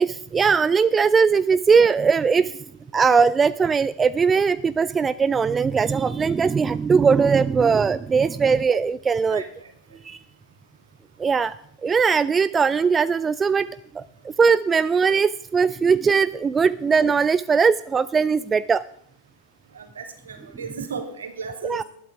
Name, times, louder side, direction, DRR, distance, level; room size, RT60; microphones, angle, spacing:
voice 1, 0.0-2.6 2.9-9.4 10.0-10.2 11.2-11.6 11.8-13.7 13.9-18.8 21.6-21.8, right 5 dB, 15° right, 16 dB, 0.4 m, -20 dB
voice 2, 9.3-9.7 19.7-21.8, right 5 dB, 70° right, 5 dB, 2.7 m, -35 dB
19.5 x 12.5 x 3.5 m, 0.69 s
figure-of-eight pair, 90°, 0 cm